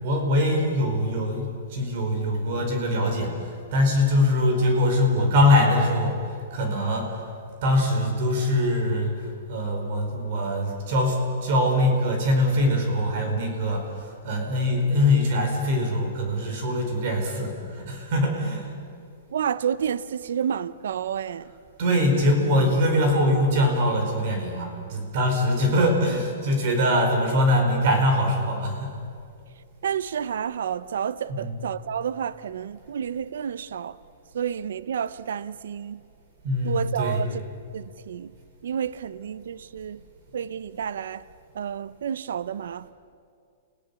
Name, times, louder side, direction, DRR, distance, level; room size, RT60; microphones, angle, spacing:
voice 1, 0.0-6.2 6.5-7.2 7.6-9.1 9.5-13.9 14.2-18.7 21.8-28.9 31.3-31.5 36.4-37.2, left 1 dB, 50° right, 4.7 m, -23 dB
voice 2, 19.3-21.5 29.8-34.0 34.3-36.0 36.6-37.4 37.7-38.3 38.6-40.0 40.3-41.3 41.5-42.9, right 8 dB, 80° right, 0.6 m, -30 dB
29.5 x 17.0 x 7.0 m
hypercardioid pair, 160°, 0 cm